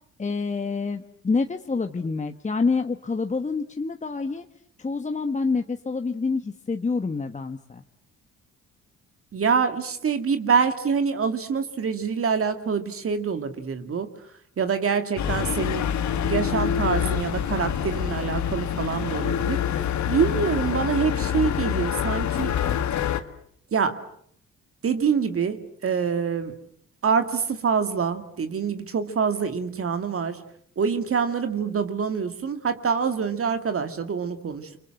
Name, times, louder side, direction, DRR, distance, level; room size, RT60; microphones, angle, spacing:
voice 1, 0.2-4.5 4.8-7.8, left 4 dB, 25° left, 7 dB, 1.3 m, -27 dB
voice 2, 9.3-14.1 14.6-15.9 16.2-19.6 20.1-22.5 23.7-24.0 24.8-26.6 27.0-30.4 30.8-34.7, right 6 dB, 50° right, 8 dB, 2.4 m, -25 dB
sound 1, 15.2-23.2, left 9 dB, 70° left, 1.9 m, -26 dB
29.5 x 25.0 x 7.8 m, 0.65 s
cardioid pair, 90°, 30 cm